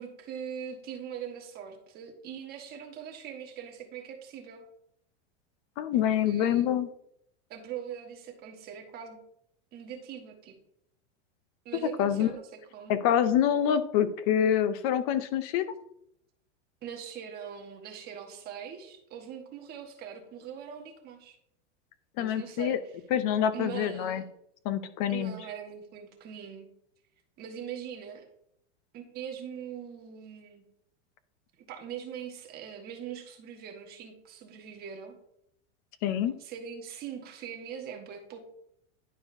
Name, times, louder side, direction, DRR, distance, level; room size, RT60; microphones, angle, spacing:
voice 1, 0.0-4.6 5.9-6.6 7.5-9.2 9.7-10.6 11.6-12.9 16.8-21.4 22.2-22.9 23.5-24.2 25.1-26.7 27.4-28.3 28.9-30.6 31.7-35.2 36.4-38.4, right 8 dB, 25° right, 3 dB, 1.1 m, -42 dB
voice 2, 5.8-6.9 11.7-12.3 12.9-15.6 22.2-22.8 23.1-24.2 24.7-25.4 36.0-36.3, left 9 dB, 35° left, 13 dB, 0.5 m, -26 dB
10.5 x 4.7 x 2.6 m, 0.72 s
supercardioid pair, 155°, 36 cm